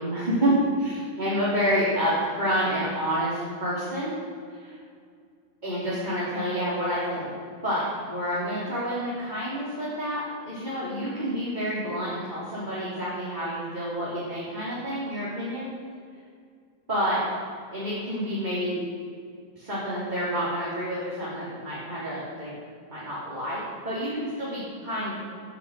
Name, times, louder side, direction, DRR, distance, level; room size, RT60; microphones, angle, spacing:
voice 1, 0.0-4.2 4.6-4.7 5.6-7.4 7.6-15.7 16.9-17.3 17.7-18.8 19.6-22.6 22.9-25.1, equal, 30° right, -9 dB, 3.6 m, -28 dB
15.0 x 9.8 x 6.5 m, 2.3 s
omnidirectional pair, 1.5 m